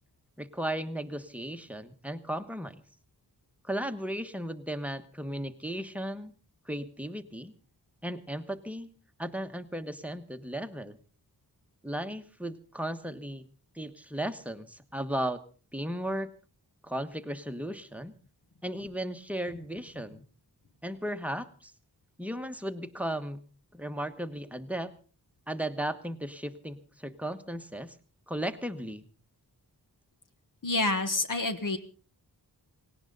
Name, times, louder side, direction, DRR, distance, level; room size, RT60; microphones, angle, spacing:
voice 1, 0.4-2.8 3.6-6.3 6.7-7.5 8.0-8.9 9.2-11.0 11.8-13.4 13.7-15.4 15.7-16.3 16.8-18.1 18.6-20.2 20.8-21.7 22.2-23.4 23.7-24.9 25.5-28.0 28.3-29.0, right 1 dB, 5° right, 7 dB, 1.3 m, -35 dB
voice 2, 30.6-31.8, left 2 dB, 50° left, 7 dB, 1.5 m, -28 dB
18.0 x 18.0 x 4.0 m, 0.38 s
wide cardioid pair, 75°, 40 cm